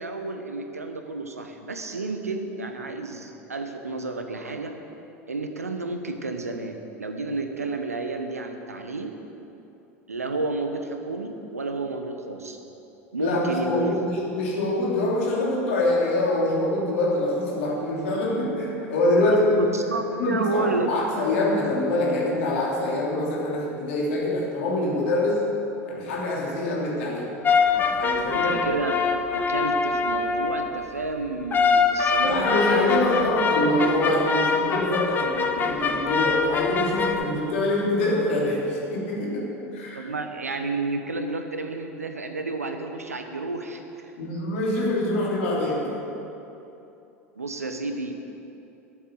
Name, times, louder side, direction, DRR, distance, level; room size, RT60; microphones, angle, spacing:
voice 1, 0.0-4.8 5.3-9.2 10.1-12.6 13.1-14.0 19.2-20.9 28.3-32.5 33.0-33.3 33.6-34.2 37.4-37.5 39.9-43.8 47.4-48.1, right 3 dB, 80° right, 6 dB, 1.0 m, -31 dB
voice 2, 13.2-19.7 20.2-25.5 25.9-27.3 27.7-28.5 32.2-40.1 44.2-46.0, left 1 dB, 60° left, -3 dB, 2.9 m, -25 dB
sound 1, 27.4-30.8 31.5-37.2, left 5 dB, 25° left, 0.9 m, -24 dB
11.0 x 8.3 x 8.1 m, 2.9 s
figure-of-eight pair, 75°, 8 cm